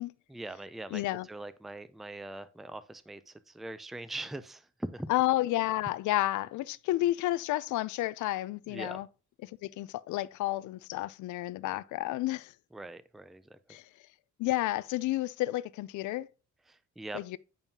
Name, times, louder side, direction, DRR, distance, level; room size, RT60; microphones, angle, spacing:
voice 1, 0.3-1.0 1.3-5.1 8.7-9.0 12.7-13.6 16.7-17.2, right 2 dB, ahead, 0.4 m, -42 dB
voice 2, 0.9-1.3 5.1-9.1 9.4-12.5 13.7-13.8 14.4-16.3 17.1-17.4, left 16 dB, 90° left, 0.5 m, -31 dB
9.0 x 5.4 x 2.8 m
cardioid pair, 125°, 29 cm